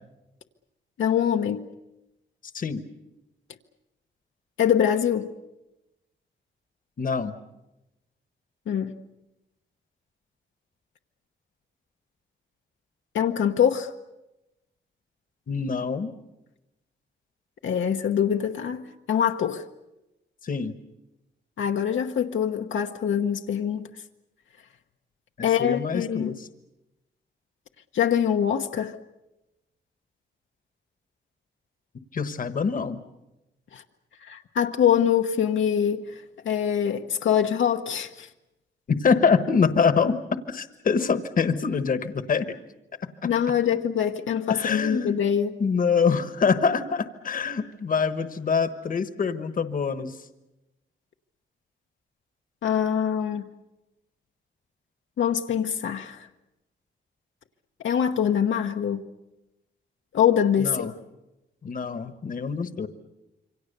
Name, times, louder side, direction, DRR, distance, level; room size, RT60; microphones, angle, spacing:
voice 1, 1.0-1.7 4.6-5.3 8.7-9.0 13.1-13.9 17.6-19.6 21.6-23.9 25.4-26.3 27.9-28.9 33.7-33.8 34.2-38.3 43.2-45.5 52.6-53.4 55.2-56.3 57.8-59.0 60.1-60.9, left 8 dB, 75° left, 1.0 m, -24 dB
voice 2, 7.0-7.3 15.5-16.1 20.4-20.7 25.4-26.5 32.1-33.0 38.9-40.2 40.5-42.6 43.2-43.3 44.5-45.1 45.6-50.2 60.6-60.9 61.6-62.9, left 5 dB, 45° left, 1.2 m, -25 dB
27.5 x 24.5 x 6.7 m
wide cardioid pair, 160°, 20 cm